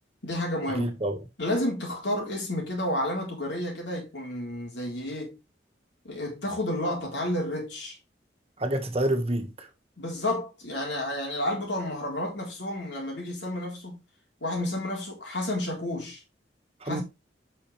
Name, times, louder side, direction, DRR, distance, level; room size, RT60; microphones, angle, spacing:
voice 1, 0.2-0.9 1.4-5.4 6.0-8.0 10.0-14.0 14.4-16.2 16.8-17.0, left 1 dB, 75° left, 3.8 m, -31 dB
voice 2, 0.7-1.2 8.6-9.7 16.8-17.0, right 1 dB, 35° right, 1.5 m, -28 dB
8.8 x 5.8 x 3.3 m
head